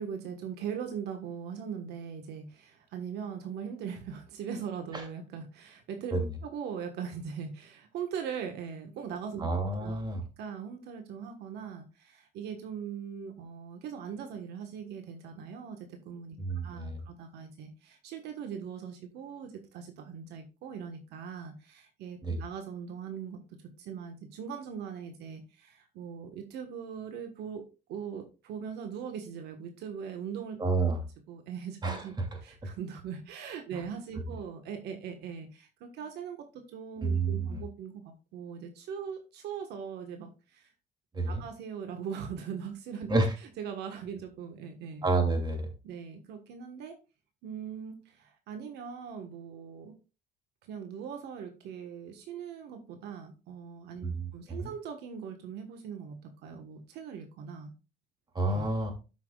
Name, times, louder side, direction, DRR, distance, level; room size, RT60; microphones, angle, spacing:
voice 1, 0.0-6.1 6.4-10.0 10.4-16.4 16.6-23.4 23.8-30.6 31.3-32.1 32.4-40.7 41.3-43.1 43.6-45.0 45.8-47.0 47.4-50.0 50.6-57.7 58.5-58.7, right 7 dB, 80° right, 5 dB, 1.4 m, -40 dB
voice 2, 9.4-10.2 16.4-17.0 22.2-22.4 30.6-31.0 31.8-32.3 33.7-33.8 37.0-37.6 41.1-41.4 43.1-43.3 45.0-45.7 54.0-54.7 58.3-58.9, right 3 dB, 25° right, 3 dB, 2.7 m, -29 dB
13.0 x 5.9 x 2.4 m, 0.31 s
cardioid pair, 110°, 17 cm